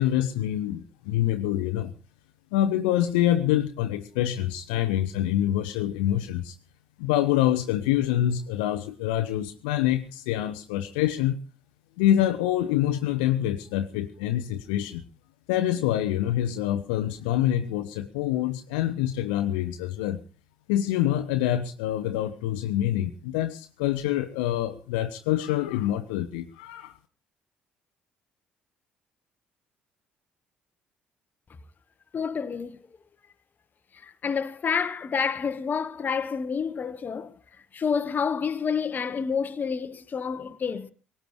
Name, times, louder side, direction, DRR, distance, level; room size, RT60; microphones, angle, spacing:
voice 1, 0.0-1.9 2.5-6.5 7.0-11.4 12.0-15.0 15.5-20.2 20.7-27.0, left 12 dB, 65° left, 0.8 m, -26 dB
voice 2, 32.1-32.8 33.9-37.3 37.7-40.9, left 6 dB, 35° left, 1.1 m, -29 dB
20.5 x 18.0 x 3.1 m
figure-of-eight pair, 50°, 5 cm